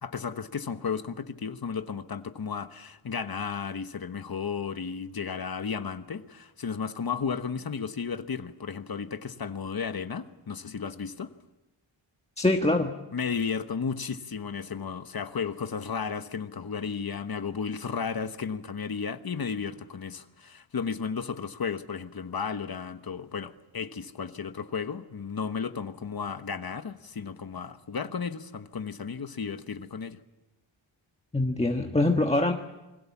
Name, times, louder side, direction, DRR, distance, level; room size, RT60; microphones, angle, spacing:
voice 1, 0.0-11.3 13.1-30.2, left 6 dB, 50° left, 1.2 m, -34 dB
voice 2, 12.4-12.9 31.3-32.5, left 2 dB, 15° left, 1.3 m, -24 dB
29.5 x 22.5 x 7.3 m
wide cardioid pair, 125°, 47 cm